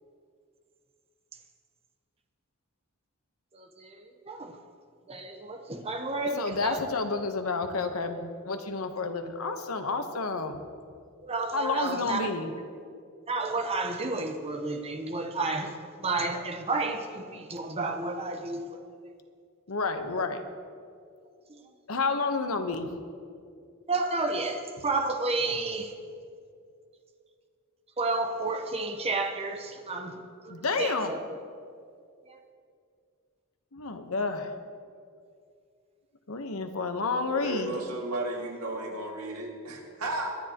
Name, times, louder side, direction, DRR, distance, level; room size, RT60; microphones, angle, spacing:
voice 1, 5.1-6.8 11.2-12.3 13.3-15.7 16.0-18.6 23.9-25.9 28.0-30.2 30.5-31.2, right 3 dB, 30° right, 0.9 m, -31 dB
voice 2, 6.3-10.6 11.5-12.5 19.7-20.5 21.9-22.9 30.5-31.1 33.7-34.5 36.3-37.7, left 3 dB, 70° left, 1.0 m, -30 dB
voice 3, 37.3-40.4, right 2 dB, 85° right, 2.1 m, -34 dB
22.5 x 11.0 x 2.9 m
head